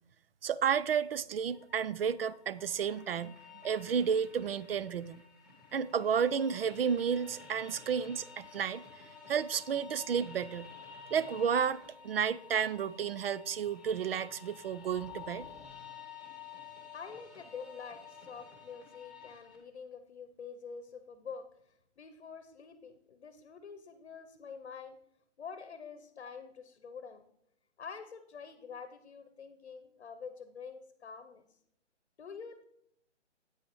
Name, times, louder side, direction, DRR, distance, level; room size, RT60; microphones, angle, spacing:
voice 1, 0.4-3.4 3.6-5.2 5.7-10.7 11.1-15.5, right 7 dB, 55° right, 0.5 m, -32 dB
sound 1, 1.5-19.6, left 7 dB, ahead, 1.5 m, -51 dB
voice 2, 16.9-25.0 25.4-27.3 27.8-31.6 32.2-32.6, left 6 dB, 60° left, 0.9 m, -47 dB
9.2 x 8.9 x 3.0 m
hypercardioid pair, 150°, 36 cm